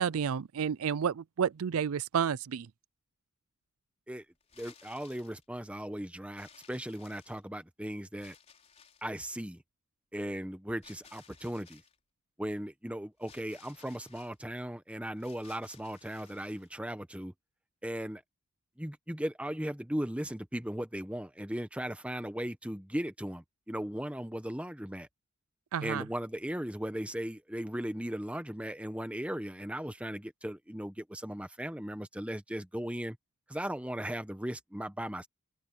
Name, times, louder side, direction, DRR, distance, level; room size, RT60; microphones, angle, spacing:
voice 1, 0.0-2.7 25.7-26.0, right 7 dB, 85° right, 0.4 m, -30 dB
sound 1, 4.4-5.4 6.3-7.6 8.2-9.2 10.8-12.0 13.2-14.3 15.2-16.7, left 6 dB, 30° left, 4.5 m, -58 dB
voice 2, 4.6-8.3 9.0-9.6 10.1-11.8 12.4-17.3 17.8-18.2 18.8-25.1 25.8-33.2 33.5-35.3, equal, 5° right, 1.0 m, -37 dB
open air
head